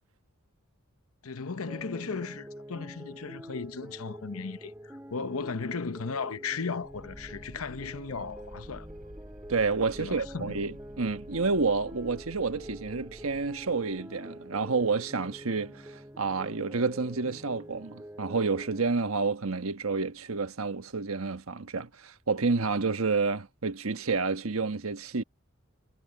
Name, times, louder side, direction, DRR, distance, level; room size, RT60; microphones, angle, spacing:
voice 1, 1.2-8.9 10.0-10.6, left 5 dB, 85° left, 0.8 m, -36 dB
sound 1, 1.7-18.8, equal, 10° right, 7.0 m, -46 dB
sound 2, 6.8-14.0, equal, 40° right, 7.2 m, -50 dB
voice 2, 9.5-25.2, right 4 dB, 80° right, 1.3 m, -29 dB
head